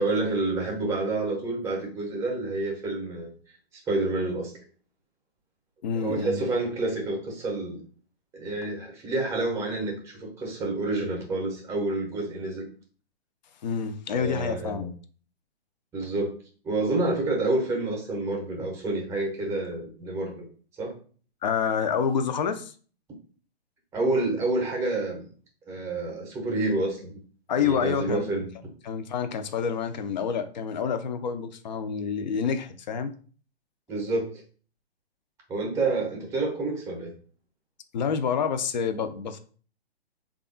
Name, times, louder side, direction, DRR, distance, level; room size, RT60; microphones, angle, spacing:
voice 1, 0.0-3.3 3.9-4.5 6.0-7.8 8.3-12.7 14.1-14.9 15.9-16.3 16.6-20.4 20.8-20.9 23.9-25.3 25.7-27.2 27.6-28.5 33.9-34.4 35.5-37.1, right 2 dB, 10° right, 0 dB, 0.7 m, -28 dB
voice 2, 5.8-6.5 13.6-14.9 21.4-22.7 27.5-28.4 28.8-33.1 37.9-39.4, left 6 dB, 45° left, 9 dB, 0.5 m, -28 dB
3.3 x 2.4 x 3.7 m, 0.42 s
figure-of-eight pair, 135°, 32 cm